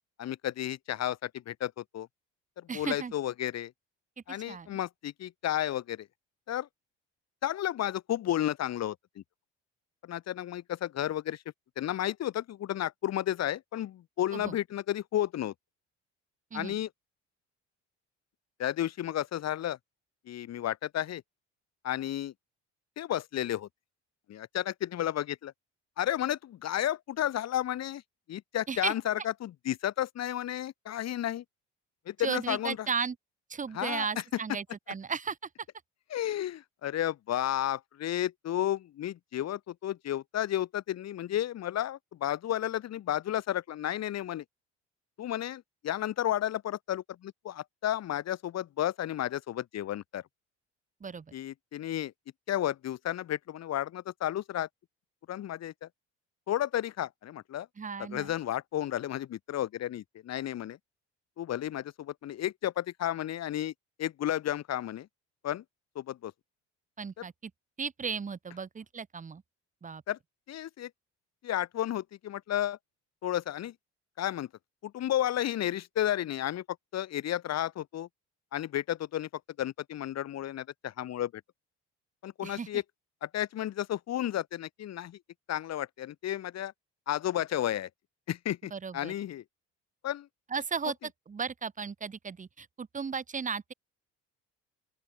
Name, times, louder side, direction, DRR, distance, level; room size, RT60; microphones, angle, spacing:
voice 1, 0.2-2.1 2.6-3.7 4.3-6.1 6.5-6.7 7.4-9.2 10.0-11.4 11.8-15.5 16.5-16.9 18.6-19.8 20.3-21.2 21.8-22.3 23.0-23.7 24.3-25.5 26.0-28.0 28.3-31.4 32.1-32.8 33.7-34.1 36.1-44.4 45.2-50.2 51.3-52.1 52.5-54.7 55.3-55.9 56.5-57.7 58.0-60.8 61.4-63.7 64.0-65.1 65.4-65.6 66.0-66.3 70.1-70.2 70.5-70.9 71.4-72.8 73.2-73.7 74.2-74.5 74.8-76.6 76.9-78.1 78.5-79.3 79.6-81.4 82.2-82.8 83.2-85.2 85.5-86.7 87.1-87.9 88.3-89.4 90.0-90.3, left 12 dB, 60° left, 2.2 m, -32 dB
voice 2, 2.7-3.1 4.3-4.8 14.3-14.6 16.5-16.8 28.7-28.9 32.2-33.1 33.5-35.4 51.0-51.3 57.8-58.3 67.0-67.5 67.8-69.4 69.8-70.0 82.4-82.7 88.7-89.1 90.5-93.7, right 5 dB, 25° right, 1.3 m, -35 dB
open air
supercardioid pair, 85°, 30 cm